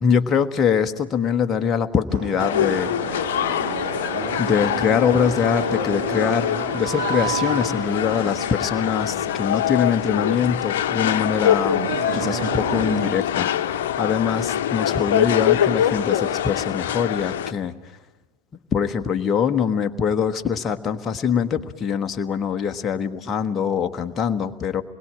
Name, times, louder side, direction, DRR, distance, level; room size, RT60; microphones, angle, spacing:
voice 1, 0.0-3.0 4.4-18.0 18.7-24.8, left 7 dB, 20° left, 5 dB, 1.2 m, -23 dB
sound 1, 2.1-13.1, right 11 dB, 45° right, 1.0 m, -33 dB
sound 2, 2.4-17.5, left 10 dB, 55° left, 1.1 m, -24 dB
27.5 x 21.0 x 8.8 m, 1.1 s
figure-of-eight pair, 90°, 0 cm